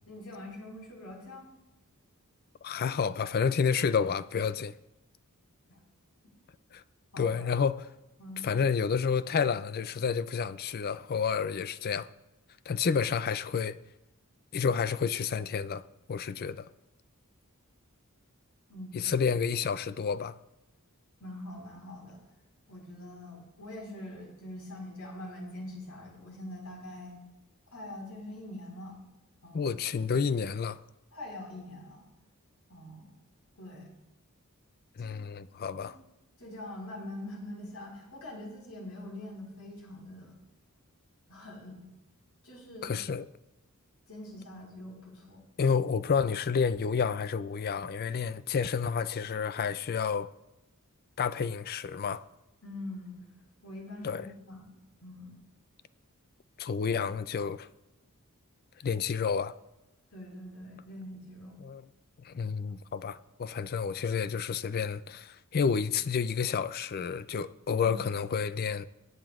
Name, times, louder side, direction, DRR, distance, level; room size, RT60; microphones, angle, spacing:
voice 1, 0.1-1.5 5.7-5.8 7.1-7.6 8.2-8.5 18.7-19.1 21.2-22.2 22.7-27.2 27.7-29.0 29.4-29.7 31.1-32.1 32.7-33.1 33.6-33.9 35.0-35.1 35.8-35.9 36.4-40.3 41.3-41.8 42.4-43.0 44.1-45.4 52.6-53.2 53.6-54.7 55.0-55.4 60.1-61.6 62.7-62.8 67.8-68.0, left 1 dB, 80° left, 4.6 m, -44 dB
voice 2, 2.6-4.7 6.7-6.8 7.2-7.9 8.4-12.1 12.7-13.8 14.5-15.8 16.1-16.7 18.9-20.3 29.5-30.8 35.0-36.0 42.8-43.2 45.6-50.3 51.2-52.2 54.0-54.3 56.6-57.7 58.8-59.5 61.6-61.8 62.2-68.8, left 6 dB, 45° left, 0.4 m, -30 dB
23.5 x 9.1 x 2.4 m
head